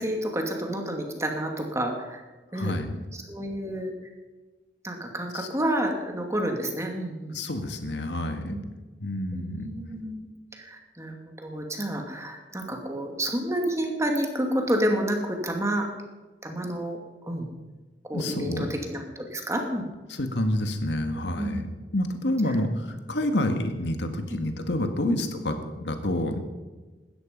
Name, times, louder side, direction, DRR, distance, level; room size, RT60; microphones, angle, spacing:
voice 1, 0.0-2.2 2.5-2.8 3.3-3.9 4.8-7.3 8.5-8.6 9.3-10.3 10.5-15.9 16.4-17.0 17.2-17.5 18.0-19.9 21.4-21.7 24.3-24.4 25.1-25.2, right 1 dB, 15° right, 3 dB, 2.4 m, -29 dB
voice 2, 2.5-3.0 5.3-5.5 7.3-8.6 9.0-9.7 18.1-18.7 20.1-21.7 21.9-26.4, left 1 dB, 80° left, 7 dB, 1.8 m, -28 dB
17.5 x 13.5 x 5.3 m, 1.2 s
head